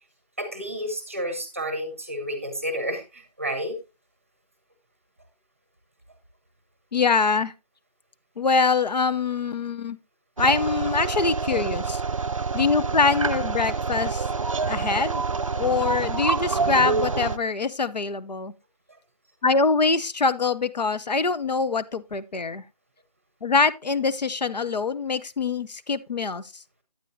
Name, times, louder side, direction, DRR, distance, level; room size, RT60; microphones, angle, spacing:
voice 1, 0.4-3.8, equal, 20° right, 0.8 m, -31 dB
voice 2, 6.9-7.5 8.4-10.0 10.4-12.0 12.5-14.2 14.6-15.2 15.5-18.5 19.4-22.6 23.4-26.5, left 4 dB, 80° left, 0.6 m, -24 dB
sound 1, 10.4-17.4, right 4 dB, 50° right, 0.4 m, -27 dB
8.9 x 8.7 x 2.6 m
figure-of-eight pair, 170°, 21 cm